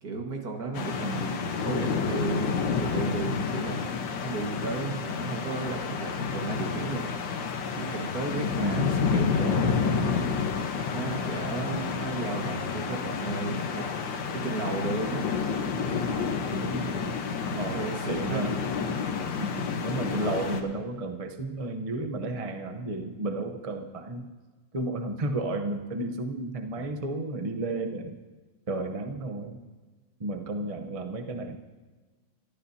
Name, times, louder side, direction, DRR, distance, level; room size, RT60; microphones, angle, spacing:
voice 1, 0.0-3.8 4.2-7.1 7.7-10.3 10.9-13.9 14.3-15.3 16.0-16.9 17.5-18.5 19.2-19.5 26.8-26.9, right 3 dB, 55° right, 2 dB, 2.2 m, -34 dB
sound 1, 0.7-20.6, left 6 dB, 75° left, 1.8 m, -30 dB
voice 2, 1.0-1.5 8.6-9.0 16.5-17.2 17.5-18.6 19.4-24.3 24.7-28.2 28.7-29.6 30.2-31.6, right 2 dB, 40° right, 5 dB, 0.5 m, -33 dB
23.0 x 13.5 x 2.8 m, 1.3 s
omnidirectional pair, 2.0 m